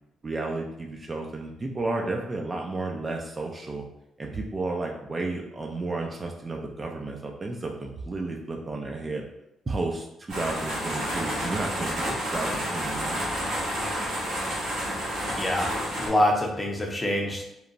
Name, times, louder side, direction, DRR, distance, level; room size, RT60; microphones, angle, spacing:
voice 1, 0.2-3.8 4.2-9.2 9.7-13.2, right 2 dB, 30° right, 1 dB, 0.3 m, -32 dB
sound 1, 10.3-16.1, equal, 85° right, 1.3 m, -30 dB
voice 2, 15.3-17.4, left 1 dB, 15° left, 0 dB, 0.6 m, -26 dB
2.9 x 2.1 x 2.5 m, 0.84 s
cardioid pair, 90°, 0 cm